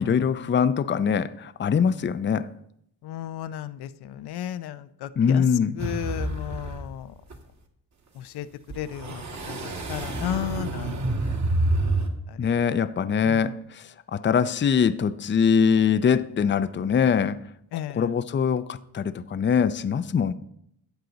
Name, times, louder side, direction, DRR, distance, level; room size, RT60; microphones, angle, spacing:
voice 1, 0.0-2.5 5.2-5.8 12.4-17.4 17.7-20.3, left 7 dB, 30° left, 0.6 m, -23 dB
voice 2, 3.0-5.4 5.8-7.1 8.2-8.5 8.7-11.0 11.8-12.0 12.4-12.5 13.2-13.4 17.7-18.1, left 11 dB, 80° left, 0.7 m, -34 dB
sound 1, 5.8-6.9 7.3-7.4 8.7-12.1, right 2 dB, 45° right, 2.1 m, -28 dB
13.0 x 8.3 x 4.0 m
cardioid pair, 80°, 39 cm